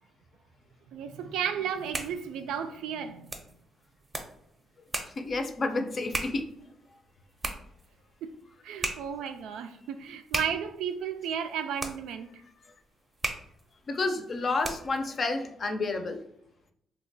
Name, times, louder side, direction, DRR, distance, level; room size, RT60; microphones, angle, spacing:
voice 1, 0.9-3.4 8.2-8.3 8.6-12.4, right 8 dB, 85° right, 0.3 m, -34 dB
sound 1, 1.6-15.1, right 2 dB, 20° right, 0.6 m, -39 dB
voice 2, 5.2-6.5 13.9-16.2, left 3 dB, 45° left, 0.5 m, -30 dB
2.8 x 2.1 x 4.0 m
cardioid pair, 90°, 0 cm